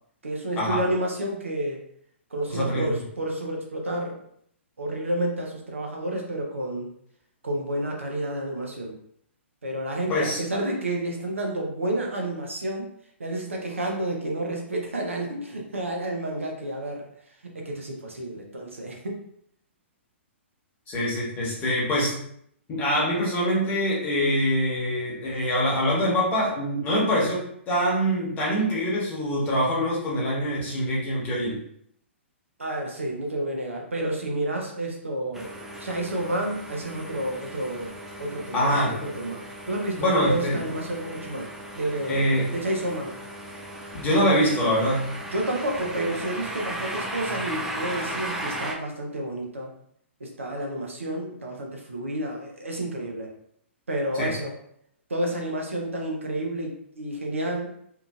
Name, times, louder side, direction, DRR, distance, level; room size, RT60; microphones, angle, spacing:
voice 1, 0.2-1.8 2.3-4.2 4.8-6.9 7.4-8.9 9.6-12.9 13.2-17.1 17.5-19.2 32.6-35.5 35.8-39.4 39.7-41.5 41.7-43.1 45.3-49.7 50.2-53.3 53.9-54.5 55.1-57.8, right 1 dB, 80° right, 0 dB, 0.7 m, -30 dB
voice 2, 2.5-2.9 10.1-10.4 20.9-22.2 22.7-31.6 38.5-39.0 40.0-40.6 42.1-42.5 43.9-45.2 54.1-54.3, equal, 25° left, -5 dB, 1.1 m, -24 dB
sound 1, 35.3-48.7, right 1 dB, 5° right, 0.4 m, -36 dB
2.8 x 2.4 x 2.4 m, 0.68 s
figure-of-eight pair, 115°, 7 cm